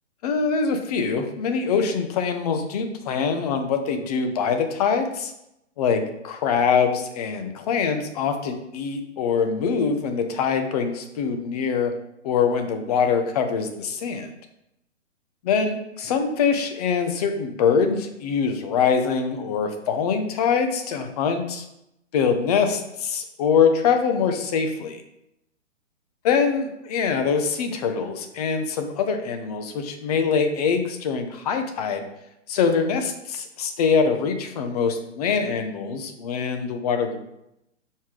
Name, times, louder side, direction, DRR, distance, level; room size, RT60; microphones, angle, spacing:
voice 1, 0.2-5.3 5.8-11.9 12.2-14.3 15.4-21.6 22.1-25.0 26.2-32.0 32.5-37.2, left 6 dB, 30° left, 6 dB, 0.8 m, -23 dB
5.6 x 4.8 x 4.8 m, 0.84 s
hypercardioid pair, 140°, 38 cm